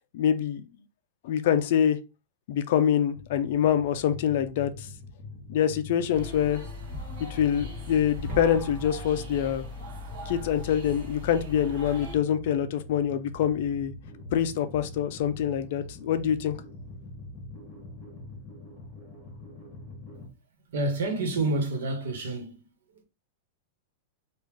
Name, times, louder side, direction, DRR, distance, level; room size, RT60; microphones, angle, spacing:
voice 1, 0.1-0.6 1.2-2.0 2.5-4.9 5.5-6.6 7.3-9.6 10.3-13.9 14.3-16.5, left 9 dB, 50° left, 0.4 m, -25 dB
sound 1, 3.1-20.3, left 2 dB, 20° left, 1.1 m, -44 dB
sound 2, 6.1-12.2, left 1 dB, 40° right, 1.0 m, -39 dB
voice 2, 20.7-22.7 22.9-23.0, right 2 dB, 75° right, 1.2 m, -29 dB
3.2 x 2.4 x 3.4 m
supercardioid pair, 175°, 0 cm